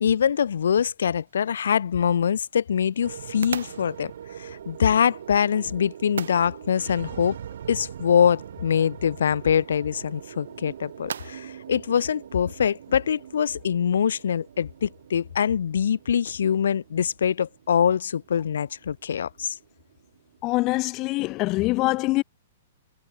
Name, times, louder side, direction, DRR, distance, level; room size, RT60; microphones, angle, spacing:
voice 1, 0.0-4.1 4.4-7.4 7.7-19.6, left 8 dB, 85° left, 0.5 m, -24 dB
sound 1, 1.3-13.0, right 7 dB, 90° right, 0.8 m, -43 dB
sound 2, 3.0-21.4, right 9 dB, 70° right, 2.0 m, -43 dB
voice 2, 20.4-22.2, left 21 dB, 30° left, 0.5 m, -24 dB
hypercardioid pair, 155°, 0 cm